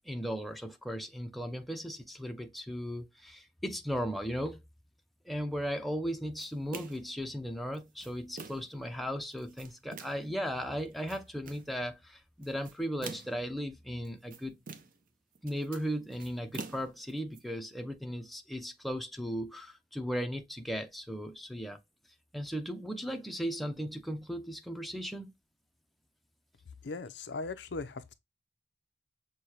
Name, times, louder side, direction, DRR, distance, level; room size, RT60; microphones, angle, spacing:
voice 1, 0.1-4.6 5.3-14.6 15.4-21.8 22.3-25.3, equal, ahead, 0.5 m, -36 dB
sound 1, 6.4-7.1 7.7-8.8 9.3-10.3 10.8-11.7 12.4-13.5 14.0-15.1 15.3-17.4, right 4 dB, 50° right, 0.6 m, -46 dB
voice 2, 26.8-28.1, left 3 dB, 75° left, 0.6 m, -38 dB
6.3 x 2.2 x 2.7 m
head